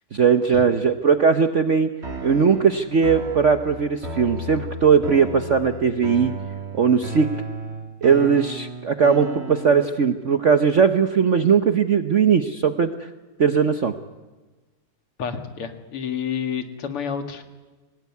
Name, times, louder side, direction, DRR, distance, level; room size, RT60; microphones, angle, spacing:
voice 1, 0.1-1.9 2.2-6.3 6.7-7.3 8.0-13.1 13.4-13.9, right 6 dB, 55° right, 9 dB, 0.8 m, -19 dB
sound 1, 2.0-10.0, right 1 dB, 30° right, 2.5 m, -34 dB
voice 2, 15.2-17.4, left 7 dB, 90° left, 7 dB, 2.8 m, -29 dB
25.0 x 18.5 x 9.5 m, 1.2 s
omnidirectional pair, 2.4 m